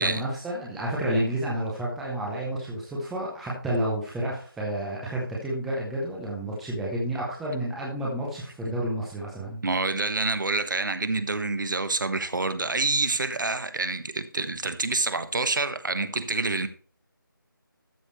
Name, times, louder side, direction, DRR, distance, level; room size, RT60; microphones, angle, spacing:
voice 1, 0.0-9.6, right 1 dB, ahead, 0.6 m, -30 dB
voice 2, 9.6-16.7, right 3 dB, 60° right, 1.2 m, -27 dB
12.5 x 6.6 x 3.1 m
figure-of-eight pair, 170°, 12 cm